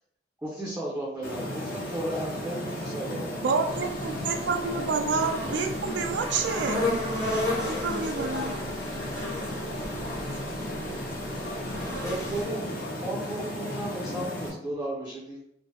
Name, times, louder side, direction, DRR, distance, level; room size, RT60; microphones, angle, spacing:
voice 1, 0.4-3.5 12.0-15.4, right 1 dB, 10° right, -5 dB, 0.5 m, -34 dB
sound 1, 1.2-14.5, equal, 50° left, 0.8 m, -35 dB
voice 2, 3.4-6.9 7.7-8.5, right 4 dB, 85° right, 6 dB, 0.4 m, -28 dB
sound 2, 3.7-12.4, left 1 dB, 15° left, 0.8 m, -34 dB
voice 3, 7.4-14.2, left 3 dB, 75° left, 3 dB, 0.4 m, -43 dB
3.1 x 2.0 x 2.8 m, 0.76 s
head